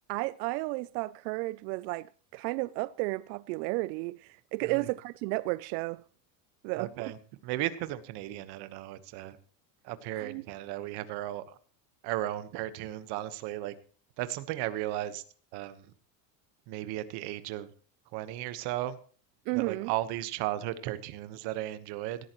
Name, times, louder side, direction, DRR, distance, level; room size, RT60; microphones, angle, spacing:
voice 1, 0.1-6.0 6.6-7.1 10.2-10.4 19.5-19.9, right 22 dB, 85° right, 0.6 m, -33 dB
voice 2, 6.8-7.2 7.4-9.4 9.8-11.6 12.0-13.7 14.2-15.2 15.5-15.9 16.7-17.7 18.1-19.0 19.5-22.2, right 14 dB, 55° right, 1.3 m, -35 dB
18.0 x 13.5 x 3.0 m
cardioid pair, 160°, 49 cm